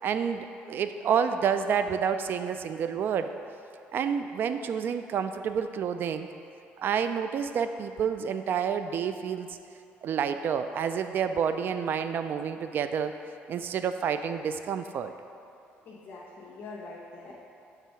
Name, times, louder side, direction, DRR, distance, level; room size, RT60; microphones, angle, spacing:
voice 1, 0.0-3.3 3.9-6.3 6.8-9.6 10.0-13.1 13.5-15.1, right 7 dB, 55° right, 9 dB, 0.4 m, -29 dB
voice 2, 15.9-17.3, left 3 dB, 55° left, -6 dB, 1.0 m, -44 dB
7.6 x 3.5 x 5.5 m, 2.6 s
cardioid pair, 105°, 4 cm